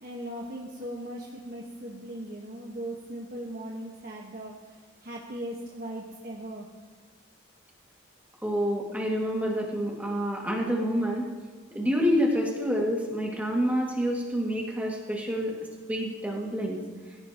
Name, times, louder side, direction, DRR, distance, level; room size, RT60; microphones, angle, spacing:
voice 1, 0.0-6.7, right 1 dB, 45° right, -2 dB, 1.4 m, -38 dB
voice 2, 8.4-11.3 11.7-15.5 15.9-16.8, equal, 10° right, -2 dB, 2.2 m, -27 dB
22.5 x 16.0 x 3.0 m, 1.4 s
head